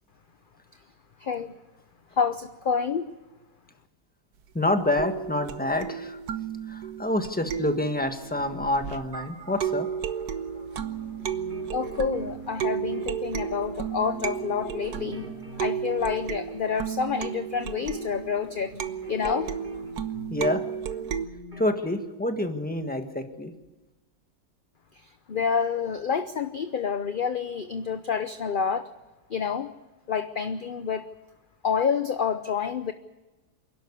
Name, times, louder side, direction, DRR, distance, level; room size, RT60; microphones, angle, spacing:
voice 1, 1.2-1.5 2.2-3.1 11.7-15.3 15.6-18.7 19.1-19.5 25.3-28.9 29.3-29.7 30.1-31.1 31.6-32.9, left 6 dB, 45° left, 9 dB, 0.8 m, -28 dB
voice 2, 4.5-6.2 6.7-9.9 20.3-20.6 21.6-23.5, left 1 dB, 5° left, 6 dB, 1.5 m, -27 dB
sound 1, 5.0-9.2 9.6-21.3, right 8 dB, 75° right, 1.5 m, -33 dB
sound 2, 9.1-13.7, right 5 dB, 45° right, 3.9 m, -50 dB
sound 3, 11.1-20.6 20.9-21.9, right 1 dB, 30° right, 5.2 m, -45 dB
27.0 x 12.0 x 8.4 m, 1.1 s
omnidirectional pair, 1.7 m